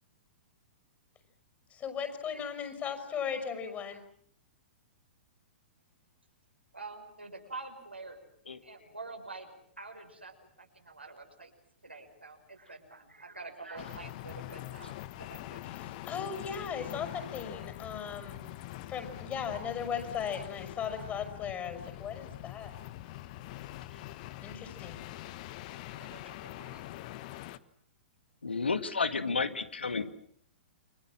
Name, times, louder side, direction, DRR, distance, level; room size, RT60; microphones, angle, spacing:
voice 1, 1.7-4.0 15.8-18.5 18.9-22.7 24.4-25.0, left 7 dB, 25° left, 8 dB, 6.0 m, -37 dB
voice 2, 6.7-8.2 8.6-11.5 11.8-15.7 25.9-26.9, right 3 dB, 90° right, 3 dB, 5.9 m, -47 dB
sound 1, 13.8-27.6, left 15 dB, 45° left, 1.3 m, -44 dB
voice 3, 28.4-30.2, left 4 dB, 80° left, 11 dB, 2.1 m, -31 dB
29.5 x 25.0 x 7.6 m, 0.63 s
figure-of-eight pair, 110°, 6 cm